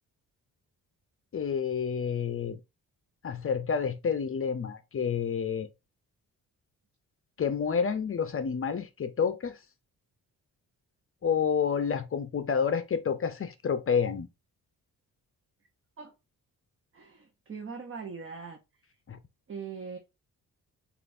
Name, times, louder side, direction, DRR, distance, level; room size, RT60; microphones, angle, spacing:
voice 1, 1.3-2.6 3.2-5.7 7.4-9.6 11.2-14.3 19.1-19.2, left 6 dB, 40° left, 0.6 m, -29 dB
voice 2, 16.9-18.6 19.5-20.0, right 5 dB, 35° right, 0.8 m, -41 dB
6.6 x 2.5 x 2.6 m
cardioid pair, 90°, 35 cm